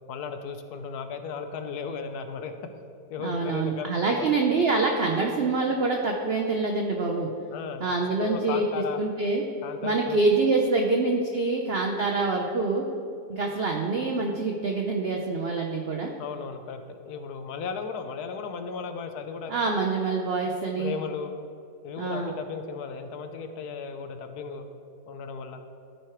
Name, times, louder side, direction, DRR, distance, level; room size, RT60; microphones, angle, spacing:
voice 1, 0.1-2.5 3.1-3.9 4.1-4.3 7.5-7.9 8.2-9.0 9.6-10.2 10.9-11.0 11.4-11.5 15.5-15.6 16.2-19.5 20.4-21.3 21.8-24.7 25.1-25.6, left 5 dB, 70° left, 7 dB, 1.2 m, -35 dB
voice 2, 3.2-7.3 7.8-8.7 9.0-9.4 9.8-12.8 13.3-16.1 19.5-21.0 22.0-22.3, right 3 dB, 60° right, 2 dB, 0.6 m, -26 dB
13.5 x 4.5 x 4.7 m, 2.5 s
omnidirectional pair, 1.8 m